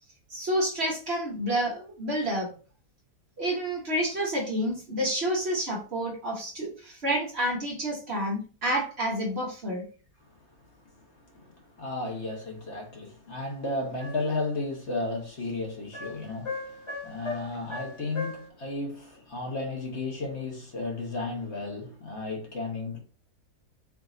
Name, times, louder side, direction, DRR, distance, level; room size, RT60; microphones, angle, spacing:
voice 1, 0.3-2.5 3.4-9.8, equal, 45° right, 1.2 m, -29 dB
voice 2, 10.8-23.0, left 2 dB, 45° left, 1.3 m, -34 dB
sound 1, 14.0-14.4 15.9-18.5, left 3 dB, 25° left, 0.8 m, -38 dB
4.8 x 2.8 x 3.8 m
omnidirectional pair, 1.7 m